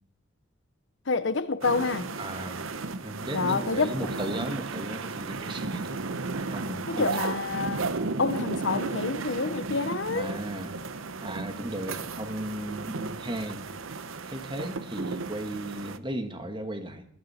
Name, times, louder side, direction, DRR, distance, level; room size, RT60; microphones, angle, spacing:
voice 1, 1.1-2.1 3.3-3.9 6.9-7.9 8.2-10.4, left 4 dB, 65° left, 0.9 m, -28 dB
sound 1, 1.6-16.0, right 3 dB, 85° right, 0.9 m, -34 dB
voice 2, 2.2-2.7 3.0-6.0 6.3-7.2 10.1-10.7 11.2-13.7 14.3-17.1, right 1 dB, 25° right, 1.7 m, -36 dB
22.0 x 13.5 x 4.3 m
head